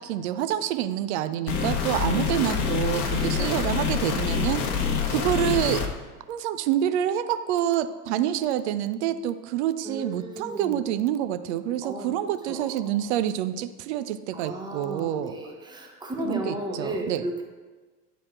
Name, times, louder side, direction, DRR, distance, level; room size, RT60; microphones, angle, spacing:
voice 1, 0.0-5.8 6.3-15.3 16.2-17.2, right 11 dB, 45° right, 11 dB, 0.4 m, -27 dB
sound 1, 1.5-5.9, left 6 dB, 60° left, 0.9 m, -26 dB
voice 2, 3.2-3.6 4.4-5.0 9.8-10.9 11.7-12.1 12.5-13.0 14.3-17.4, right 1 dB, 10° right, 1 dB, 1.1 m, -35 dB
9.9 x 4.2 x 3.8 m, 1.4 s
figure-of-eight pair, 80°, 49 cm